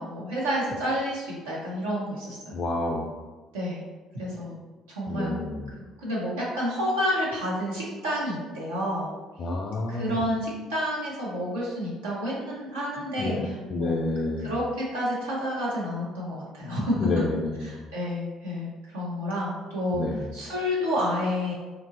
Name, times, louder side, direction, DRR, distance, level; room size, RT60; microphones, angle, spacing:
voice 1, 0.0-2.5 3.5-3.8 4.1-4.6 4.9-5.3 6.0-9.1 9.9-13.9 14.4-17.1 17.6-21.5, equal, 90° right, -6 dB, 1.0 m, -29 dB
voice 2, 2.5-3.0 5.1-5.7 9.4-10.2 13.2-14.5 16.6-17.7 19.9-20.3, left 2 dB, 50° left, -2 dB, 0.3 m, -29 dB
2.9 x 2.5 x 2.6 m, 1.3 s
hypercardioid pair, 60°, 0 cm